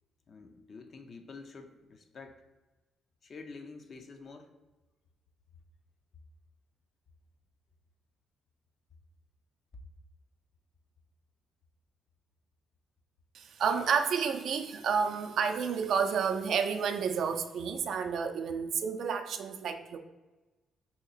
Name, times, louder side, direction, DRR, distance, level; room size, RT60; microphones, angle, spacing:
voice 1, 0.3-2.4 3.2-4.5, left 4 dB, 50° left, 0.4 m, -48 dB
voice 2, 13.3-20.0, right 6 dB, 70° right, 0.3 m, -30 dB
2.8 x 2.8 x 4.0 m
cardioid pair, 90°, 0 cm